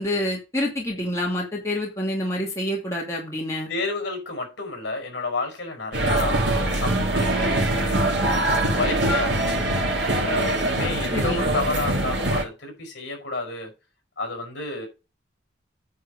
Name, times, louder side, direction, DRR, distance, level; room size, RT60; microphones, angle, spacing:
voice 1, 0.0-3.7 11.1-11.4, left 1 dB, 15° left, 2.5 m, -27 dB
voice 2, 3.7-8.1 8.6-9.7 10.2-13.7 14.2-14.9, left 3 dB, 65° left, 5.1 m, -30 dB
sound 1, 5.9-12.4, right 1 dB, 65° right, 2.8 m, -23 dB
9.5 x 4.6 x 6.5 m
head